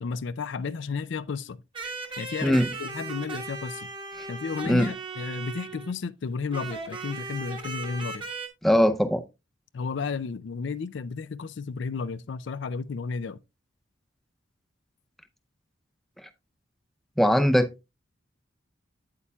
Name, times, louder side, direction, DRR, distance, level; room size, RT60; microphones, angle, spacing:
voice 1, 0.0-1.6 2.2-3.9 4.3-8.2 9.7-13.4, left 5 dB, 65° left, 0.4 m, -33 dB
sound 1, 1.7-6.0 6.5-8.5, right 3 dB, 25° right, 1.3 m, -37 dB
voice 2, 8.6-9.2 17.2-17.9, equal, ahead, 0.5 m, -21 dB
8.7 x 8.3 x 2.3 m
head